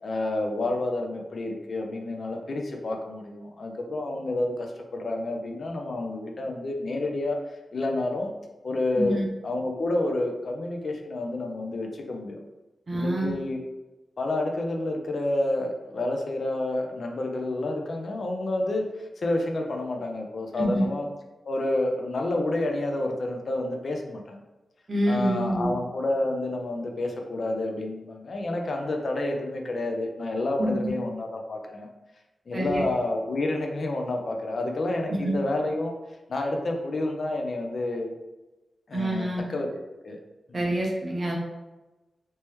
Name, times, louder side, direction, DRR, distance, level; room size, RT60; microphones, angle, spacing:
voice 1, 0.0-7.4 7.7-8.3 8.6-9.2 9.4-12.4 12.9-13.6 14.2-21.1 21.4-24.4 25.1-31.9 32.5-36.0 36.3-38.1 38.9-39.7 40.0-40.2 40.5-40.7, left 2 dB, 55° left, 2 dB, 0.5 m, -29 dB
voice 2, 9.0-9.3 12.9-13.3 20.6-20.9 24.9-25.7 30.6-30.9 32.5-32.8 35.2-35.3 38.9-39.4 40.5-41.4, right 1 dB, 40° right, -2 dB, 0.8 m, -26 dB
3.3 x 2.9 x 3.0 m, 1.1 s
wide cardioid pair, 135°, 0 cm